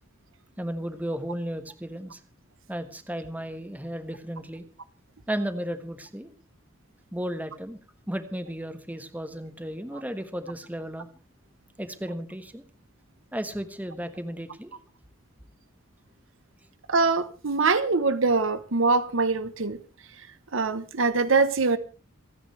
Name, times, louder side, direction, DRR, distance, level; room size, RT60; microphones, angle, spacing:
voice 1, 0.6-2.2 2.7-4.6 5.3-6.3 7.1-7.8 8.1-11.1 11.8-12.6 13.3-14.7, equal, 10° right, 1.4 m, -34 dB
voice 2, 16.9-19.8 20.5-21.8, right 4 dB, 75° right, 1.1 m, -23 dB
28.0 x 9.9 x 3.4 m
head